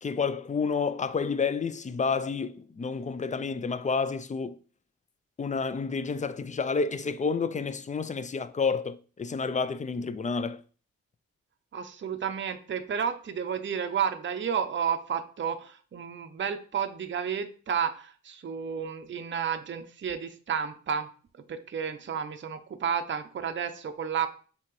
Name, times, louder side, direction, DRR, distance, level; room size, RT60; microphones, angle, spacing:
voice 1, 0.0-4.6 5.4-10.6, left 5 dB, 25° left, 0.4 m, -30 dB
voice 2, 11.7-21.1 21.5-24.3, right 7 dB, 40° right, 0.6 m, -31 dB
5.7 x 2.9 x 3.1 m
cardioid pair, 70°, 31 cm